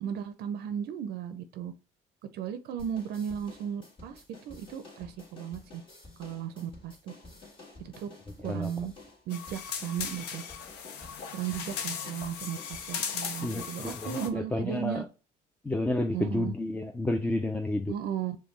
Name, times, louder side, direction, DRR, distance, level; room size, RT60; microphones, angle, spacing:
voice 1, 0.0-1.7 2.3-5.8 6.2-7.1 7.8-8.1 8.4-8.9 9.3-10.4 11.3-15.0 16.1-16.5 17.9-18.4, right 9 dB, 70° right, 0.5 m, -35 dB
sound 1, 2.8-13.8, left 2 dB, 30° left, 1.5 m, -51 dB
sound 2, 9.3-14.3, left 7 dB, 85° left, 0.7 m, -38 dB
voice 2, 13.4-15.1 15.6-17.9, left 1 dB, 10° left, 0.4 m, -30 dB
5.1 x 2.2 x 3.1 m
cardioid pair, 110°, 17 cm